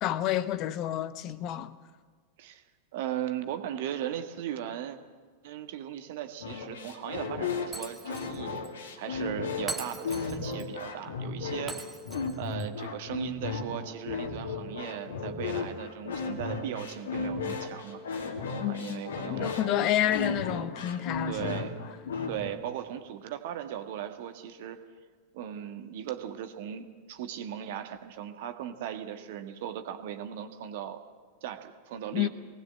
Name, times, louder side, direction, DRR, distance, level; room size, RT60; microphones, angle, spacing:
voice 1, 0.0-1.7 18.6-21.6 32.1-32.3, left 12 dB, 40° left, 0.9 m, -29 dB
voice 2, 2.9-5.0 5.4-8.6 9.0-11.9 12.4-18.0 18.7-19.9 21.3-21.8 22.3-24.8 25.3-31.0 31.4-32.3, right 10 dB, 50° right, 1.6 m, -37 dB
sound 1, 6.4-22.5, left 4 dB, 65° left, 2.4 m, -35 dB
Shatter, 7.7-8.4 8.6-8.7 9.7-10.7 11.7-12.7, right 3 dB, 10° right, 1.5 m, -40 dB
20.0 x 18.5 x 7.8 m
figure-of-eight pair, 90°, 0 cm